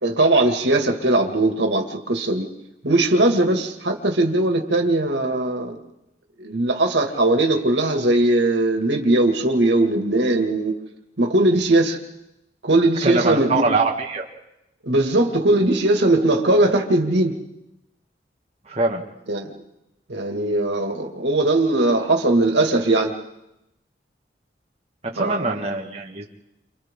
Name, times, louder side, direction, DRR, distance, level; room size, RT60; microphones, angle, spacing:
voice 1, 0.0-2.5 2.8-5.8 6.4-10.8 11.2-12.0 12.6-13.6 14.8-17.4 19.3-19.5 20.1-23.1 25.2-25.5, right 2 dB, 85° right, 3 dB, 2.2 m, -19 dB
voice 2, 13.0-14.2 18.7-19.0 25.1-26.2, right 3 dB, 35° right, -1 dB, 1.8 m, -23 dB
29.5 x 27.0 x 3.8 m, 0.89 s
head